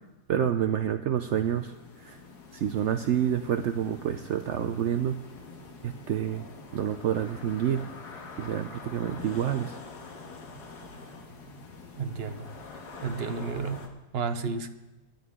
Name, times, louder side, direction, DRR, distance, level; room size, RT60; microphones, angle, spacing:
voice 1, 0.3-1.7 2.0-2.2 2.5-5.2 5.8-6.5 6.7-7.8 8.4-9.8, right 9 dB, 75° right, 9 dB, 0.6 m, -28 dB
sound 1, 1.2-13.9, left 4 dB, 70° left, 2.1 m, -45 dB
voice 2, 12.0-12.5 13.0-14.7, right 5 dB, 50° right, 9 dB, 0.8 m, -32 dB
22.0 x 11.0 x 3.6 m, 1.1 s
omnidirectional pair, 1.8 m